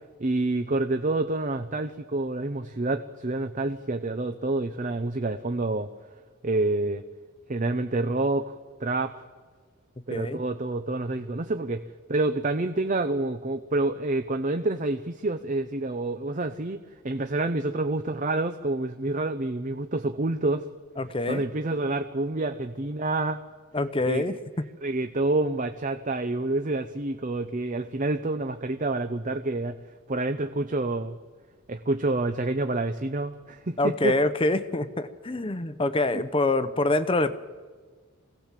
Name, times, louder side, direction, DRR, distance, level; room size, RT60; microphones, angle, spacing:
voice 1, 0.2-5.9 6.4-7.0 7.5-8.5 8.8-9.1 10.1-11.8 12.1-16.8 17.0-20.6 21.3-23.4 24.0-24.4 24.8-29.8 30.1-31.2 31.7-34.1 36.1-36.2, right 2 dB, 35° right, 8 dB, 0.6 m, -28 dB
voice 2, 10.1-10.4 21.0-21.4 23.7-24.7 33.8-37.3, left 2 dB, 25° left, 12 dB, 0.8 m, -26 dB
24.5 x 17.0 x 7.5 m, 1.5 s
head